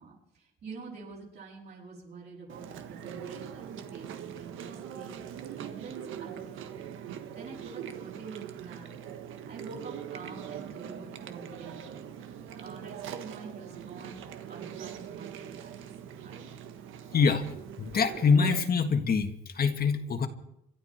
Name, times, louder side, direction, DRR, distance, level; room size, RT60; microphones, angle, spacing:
voice 1, 0.0-6.9 7.3-8.9 9.5-16.4, right 4 dB, 55° right, -5 dB, 7.8 m, -47 dB
Chewing mastication, 2.5-18.6, right 9 dB, 90° right, 1.5 m, -42 dB
voice 2, 17.1-17.5 17.8-20.3, left 5 dB, 50° left, 6 dB, 1.7 m, -25 dB
26.5 x 12.5 x 4.4 m, 0.79 s
cardioid pair, 90°, 20 cm